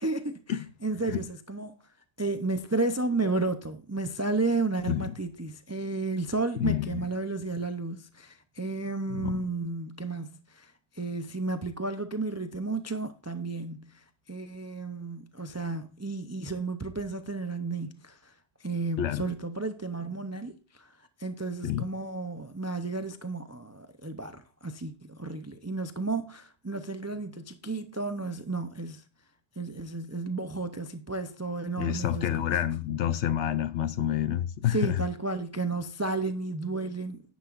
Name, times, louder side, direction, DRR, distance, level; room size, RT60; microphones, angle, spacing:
voice 1, 0.0-1.7 2.2-18.3 18.6-20.9 21.2-29.0 29.6-32.6 34.7-37.2, right 3 dB, 25° right, 0.3 m, -32 dB
voice 2, 6.6-7.1 9.1-9.3 19.0-19.2 21.6-21.8 31.8-35.0, left 11 dB, 70° left, 0.9 m, -28 dB
10.0 x 10.0 x 2.5 m
omnidirectional pair, 1.3 m